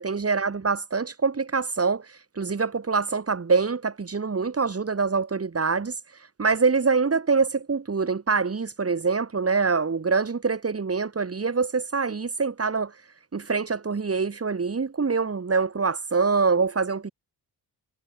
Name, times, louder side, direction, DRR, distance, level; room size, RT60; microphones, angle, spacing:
voice 1, 0.0-5.9 6.4-12.9 13.3-17.1, right 4 dB, 35° right, 6.0 m, -25 dB
cardioid pair, 115°, 41 cm